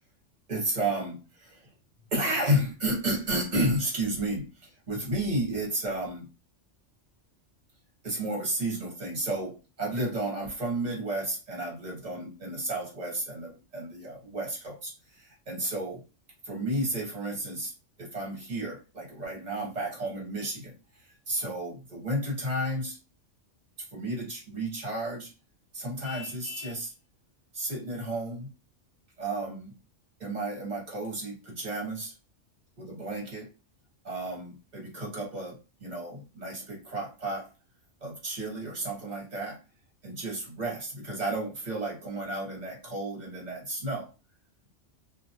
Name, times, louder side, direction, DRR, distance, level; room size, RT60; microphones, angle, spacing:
voice 1, 0.5-1.7 2.1-6.3 8.0-16.0 16.4-17.7 18.0-20.7 21.3-23.0 23.9-25.3 25.7-26.9 27.5-28.5 29.2-29.7 30.2-32.1 32.8-33.5 34.0-37.5 38.0-39.6 40.0-44.1, right 1 dB, 40° right, 1.2 m, -32 dB
Vehicle horn car horn honking, 26.0-26.9, left 8 dB, 50° left, 0.8 m, -44 dB
2.3 x 2.0 x 2.8 m
omnidirectional pair, 1.2 m